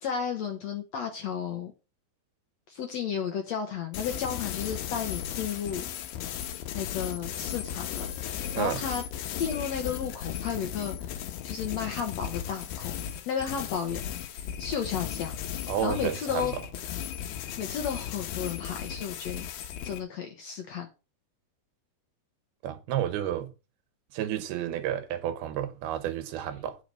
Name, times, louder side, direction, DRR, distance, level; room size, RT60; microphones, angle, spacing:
voice 1, 0.0-1.7 2.7-5.8 6.7-9.0 9.4-12.9 13.3-15.4 15.8-16.5 17.6-19.5 19.8-20.9, left 7 dB, 65° left, 1.7 m, -33 dB
sound 1, 3.9-20.0, left 10 dB, 85° left, 2.8 m, -36 dB
voice 2, 15.7-16.5 22.6-23.5 24.1-26.8, right 10 dB, 85° right, 2.9 m, -31 dB
8.7 x 5.9 x 5.2 m
omnidirectional pair, 4.3 m